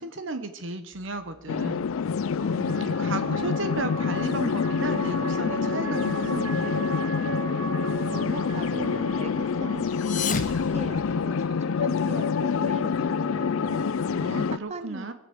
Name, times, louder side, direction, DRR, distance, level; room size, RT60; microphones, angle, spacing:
voice 1, 0.0-1.9 2.5-6.8 14.1-15.1, right 2 dB, 60° right, 9 dB, 1.0 m, -34 dB
sound 1, 0.9-11.3, right 3 dB, 80° right, 1.2 m, -38 dB
sound 2, 1.5-14.6, left 5 dB, 75° left, 0.4 m, -27 dB
voice 2, 8.1-13.9 14.5-15.1, right 2 dB, 30° right, 11 dB, 0.6 m, -39 dB
sound 3, 9.8-11.7, left 5 dB, 35° left, 1.0 m, -33 dB
20.0 x 7.3 x 7.1 m, 0.96 s
head